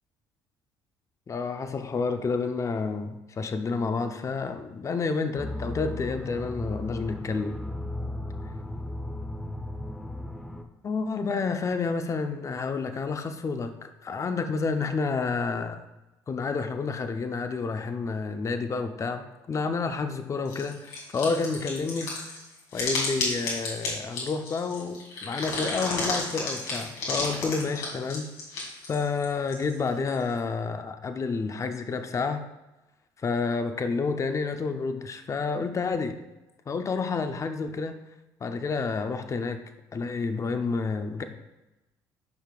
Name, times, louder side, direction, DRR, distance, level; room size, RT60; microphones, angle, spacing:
voice 1, 1.3-7.7 10.8-15.8 16.3-22.2 22.7-28.3 28.8-32.4 33.2-36.2 36.7-38.0 38.4-39.6 39.9-41.2, left 4 dB, 35° left, 7 dB, 0.8 m, -29 dB
sound 1, 5.4-10.6, left 1 dB, 5° left, 0.8 m, -35 dB
sound 2, 20.5-30.2, left 3 dB, 85° left, 2.7 m, -32 dB
10.5 x 5.6 x 2.5 m, 1.0 s
supercardioid pair, 80°, 9 cm